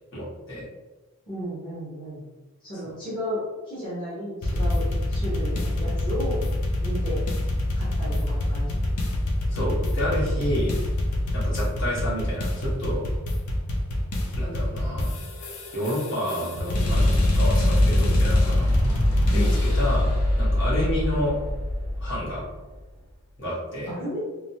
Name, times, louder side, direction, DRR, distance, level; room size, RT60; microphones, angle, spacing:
voice 1, 0.1-0.6 8.0-8.2 9.5-10.7 11.3-13.0 14.4-15.1 15.7-18.7 19.3-20.1 20.4-21.4 22.0-22.4 23.4-23.9, equal, 55° left, -8 dB, 1.2 m, -29 dB
voice 2, 1.3-2.2 2.6-6.4 6.8-7.2 7.8-8.8 19.3-19.7 23.9-24.2, equal, 20° left, -10 dB, 0.9 m, -33 dB
sound 1, 4.4-20.0, left 1 dB, 85° left, 0.5 m, -25 dB
sound 2, 14.7-22.8, left 1 dB, 50° right, 0.6 m, -25 dB
3.1 x 2.1 x 2.7 m, 1.1 s
head